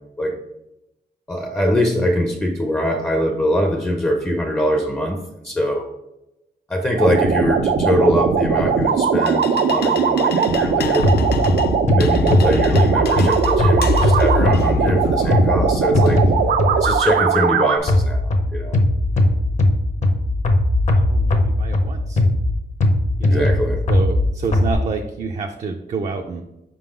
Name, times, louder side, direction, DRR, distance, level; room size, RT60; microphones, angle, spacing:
voice 1, 1.3-5.9 6.7-11.2 11.9-16.2 16.7-18.8 23.2-23.8, equal, 10° left, 3 dB, 0.5 m, -22 dB
sound 1, 7.0-17.8, right 6 dB, 85° right, 0.6 m, -19 dB
sound 2, 8.8-16.8, left 8 dB, 70° left, 0.5 m, -33 dB
sound 3, 11.0-17.1 17.9-24.7, left 1 dB, 45° left, 0.8 m, -19 dB
voice 2, 20.9-22.2 23.2-23.5 23.9-26.4, right 4 dB, 40° right, 3 dB, 0.5 m, -28 dB
5.2 x 3.9 x 5.0 m, 0.91 s
wide cardioid pair, 160°, 17 cm